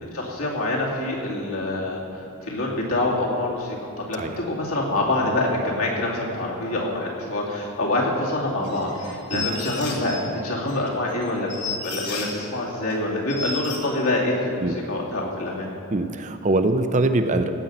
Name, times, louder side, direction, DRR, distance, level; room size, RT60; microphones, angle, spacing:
voice 1, 0.0-15.7, left 2 dB, 75° left, -3 dB, 2.5 m, -26 dB
sound 1, 8.6-10.2 10.7-12.4 12.9-13.0 13.3-13.8, left 4 dB, 50° left, 2.1 m, -32 dB
voice 2, 15.9-17.5, right 2 dB, 35° right, 8 dB, 0.5 m, -22 dB
16.5 x 5.6 x 7.9 m, 2.8 s
head